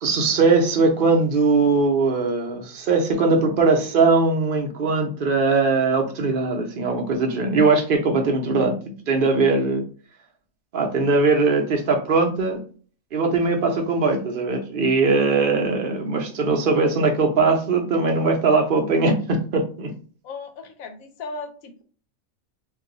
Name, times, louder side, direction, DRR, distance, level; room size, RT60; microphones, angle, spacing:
voice 1, 0.0-8.7 9.1-9.8 10.7-12.6 13.1-19.9, right 3 dB, 50° right, 2 dB, 0.7 m, -20 dB
voice 2, 20.2-21.8, left 3 dB, 80° left, 6 dB, 1.1 m, -36 dB
2.6 x 2.3 x 3.7 m, 0.40 s
omnidirectional pair, 1.4 m